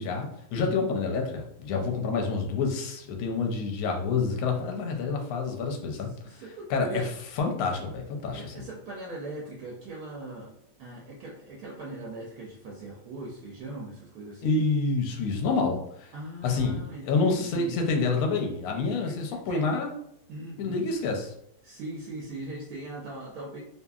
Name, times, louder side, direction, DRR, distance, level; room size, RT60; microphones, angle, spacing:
voice 1, 0.0-6.4 6.7-7.1 7.4-8.7 14.4-16.1 16.4-19.9 20.6-21.3, left 4 dB, 70° left, 2 dB, 0.9 m, -28 dB
voice 2, 6.2-7.1 8.3-10.5 10.8-14.7 16.1-17.8 18.9-19.6 20.3-20.8 21.6-23.6, right 2 dB, 70° right, -3 dB, 1.0 m, -40 dB
2.7 x 2.5 x 2.3 m, 0.72 s
omnidirectional pair, 1.8 m